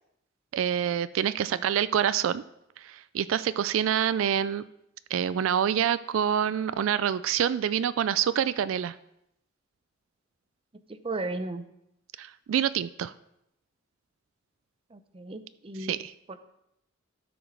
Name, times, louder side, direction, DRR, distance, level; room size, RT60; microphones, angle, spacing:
voice 1, 0.5-2.4 2.8-4.6 5.1-9.0 12.2-13.1 15.8-16.1, right 9 dB, 75° right, 15 dB, 0.3 m, -26 dB
voice 2, 10.9-11.6 14.9-15.9 16.3-16.4, right 2 dB, 30° right, 10 dB, 0.6 m, -35 dB
12.5 x 5.1 x 6.0 m, 0.81 s
head